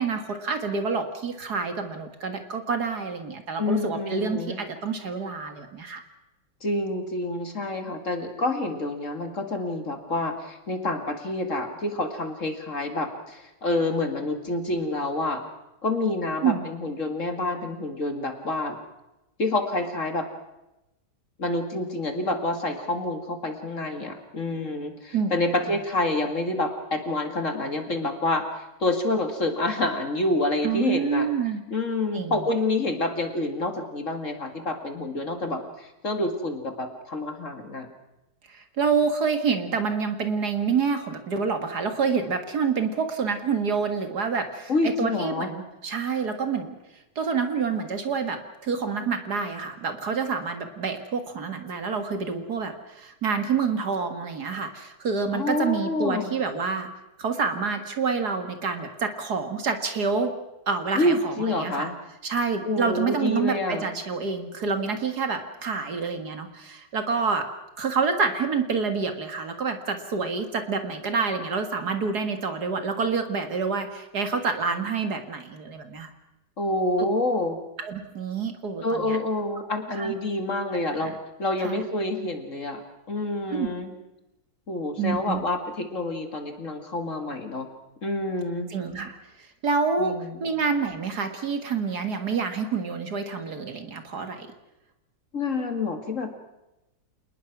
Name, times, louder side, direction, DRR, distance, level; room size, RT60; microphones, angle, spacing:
voice 1, 0.0-6.0 16.4-16.7 25.1-25.6 30.6-31.6 32.1-32.5 38.5-46.7 47.2-56.9 57.2-60.3 60.7-61.9 62.2-67.5 67.8-76.1 77.8-79.2 79.9-80.1 81.0-81.1 81.6-81.8 83.5-83.7 85.0-85.4 88.7-89.2 89.6-94.5, right 5 dB, 60° right, 7 dB, 2.3 m, -27 dB
voice 2, 3.6-4.6 6.6-15.4 15.8-18.8 19.4-20.3 21.4-31.3 31.7-37.9 44.7-45.5 55.3-56.3 61.0-61.9 62.7-63.9 76.6-77.6 78.8-81.1 81.4-82.8 83.1-83.9 84.7-87.7 88.0-88.7 90.0-90.4 95.3-96.3, left 2 dB, 40° left, 6 dB, 2.4 m, -28 dB
27.5 x 20.0 x 6.0 m, 0.94 s
omnidirectional pair, 2.0 m